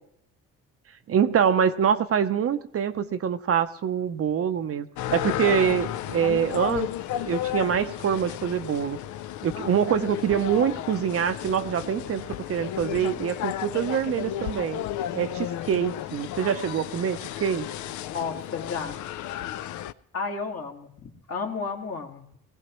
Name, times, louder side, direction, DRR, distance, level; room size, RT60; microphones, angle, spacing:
voice 1, 1.1-6.9 7.3-9.0 9.4-14.8 15.1-17.7, right 8 dB, 50° right, 9 dB, 0.7 m, -25 dB
sound 1, 5.0-19.9, left 12 dB, 75° left, 0.5 m, -33 dB
voice 2, 18.1-19.0 20.1-22.3, left 5 dB, 50° left, 1 dB, 1.8 m, -32 dB
20.0 x 15.5 x 3.0 m, 0.74 s
cardioid pair, 90°, 30 cm